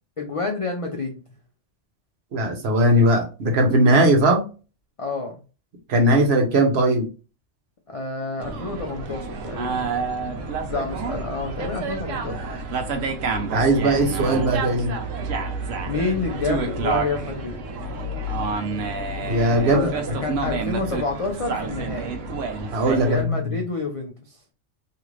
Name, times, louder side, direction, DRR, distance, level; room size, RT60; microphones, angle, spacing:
voice 1, 0.2-1.2 5.0-5.3 7.9-9.9 10.7-12.4 15.9-17.6 19.6-22.2 23.0-24.4, left 3 dB, 55° left, 1 dB, 0.4 m, -29 dB
voice 2, 2.3-4.4 5.9-7.1 13.4-14.9 19.3-19.9 22.7-23.4, right 1 dB, 60° right, 2 dB, 1.0 m, -19 dB
sound 1, 8.4-23.2, right 3 dB, 85° right, 1.0 m, -29 dB
2.7 x 2.4 x 3.0 m, 0.33 s
omnidirectional pair, 1.3 m